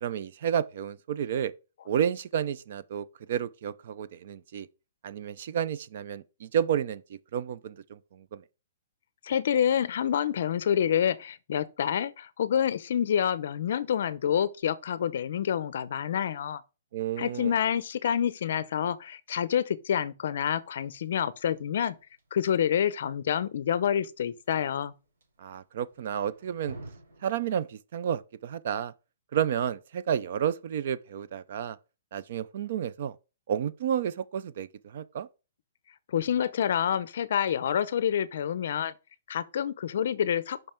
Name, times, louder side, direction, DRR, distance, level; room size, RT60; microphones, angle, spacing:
voice 1, 0.0-1.5 1.9-4.7 5.0-8.4 16.9-17.5 25.4-26.8 27.2-28.9 29.3-31.8 32.1-33.2 33.5-35.3, right 9 dB, 40° right, 0.4 m, -31 dB
voice 2, 9.2-16.6 17.2-21.9 22.3-24.9 36.1-38.9 39.3-40.7, left 9 dB, 50° left, 0.5 m, -27 dB
sound 1, 20.6-27.3, right 2 dB, 85° right, 3.6 m, -51 dB
5.4 x 5.4 x 4.4 m
hypercardioid pair, 180°, 0 cm